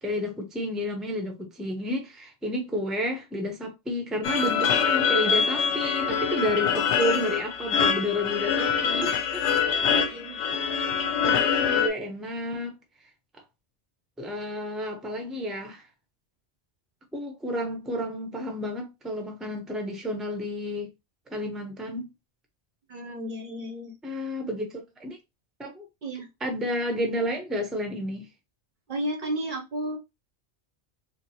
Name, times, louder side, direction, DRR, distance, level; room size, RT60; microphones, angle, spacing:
voice 1, 0.0-9.5 10.3-10.6 11.2-12.8 14.2-15.9 17.1-20.9 21.3-22.1 24.0-25.2 25.6-25.9 26.4-28.3, left 1 dB, ahead, 0.5 m, -31 dB
sound 1, 4.2-11.9, left 6 dB, 80° left, 0.9 m, -24 dB
voice 2, 10.1-10.7 22.9-24.0 26.0-26.3 28.9-30.0, right 1 dB, 55° right, 0.7 m, -33 dB
4.4 x 2.1 x 2.8 m
omnidirectional pair, 1.2 m